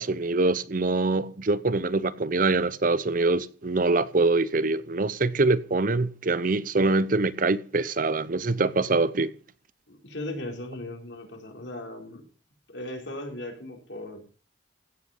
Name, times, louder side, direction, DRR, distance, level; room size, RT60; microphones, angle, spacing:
voice 1, 0.0-9.3, right 3 dB, 50° right, 0.7 m, -24 dB
voice 2, 9.9-12.2 12.7-14.2, left 1 dB, 70° left, 4.1 m, -37 dB
16.0 x 8.5 x 5.5 m
head